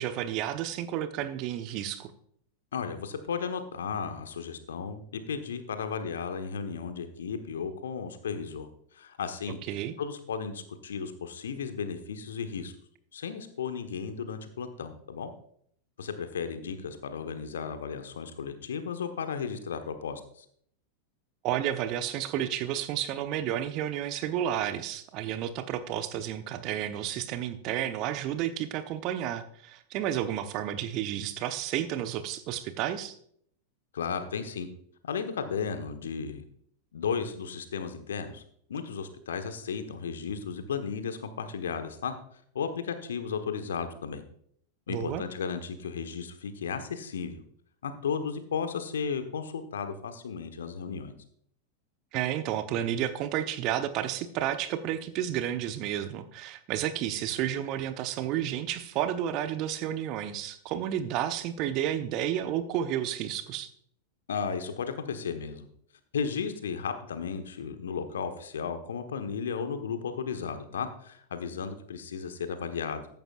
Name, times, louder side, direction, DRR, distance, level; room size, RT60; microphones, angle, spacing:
voice 1, 0.0-2.1 9.7-9.9 21.4-33.1 44.9-45.2 52.1-63.7, right 11 dB, 40° right, 10 dB, 1.0 m, -31 dB
voice 2, 2.7-8.7 8.9-9.6 10.0-12.7 13.1-15.3 16.0-20.4 33.9-34.7 35.0-36.4 36.9-38.4 38.7-42.1 42.5-44.2 44.9-47.4 47.8-51.1 64.3-65.7 66.1-73.1, left 6 dB, 65° left, 8 dB, 1.3 m, -34 dB
14.5 x 11.0 x 2.5 m, 0.66 s
figure-of-eight pair, 90°, 0 cm